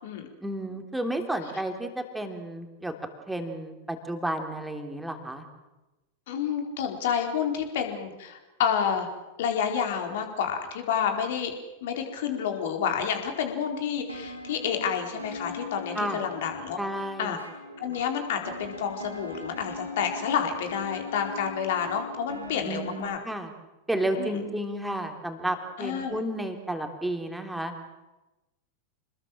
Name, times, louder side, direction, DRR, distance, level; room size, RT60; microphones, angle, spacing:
voice 1, 0.4-2.9 3.3-5.4 16.0-16.2 16.8-17.4 22.6-23.5 23.9-27.7, right 1 dB, 5° right, 5 dB, 3.4 m, -32 dB
voice 2, 6.3-9.1 9.4-11.5 11.8-16.8 17.2-17.4 17.8-23.2 24.2-24.4 25.8-26.2, left 7 dB, 55° left, 4 dB, 4.3 m, -29 dB
sound 1, 14.1-23.0, left 2 dB, 80° right, 5.0 m, -41 dB
28.0 x 20.5 x 7.5 m, 1.1 s
figure-of-eight pair, 90°, 0 cm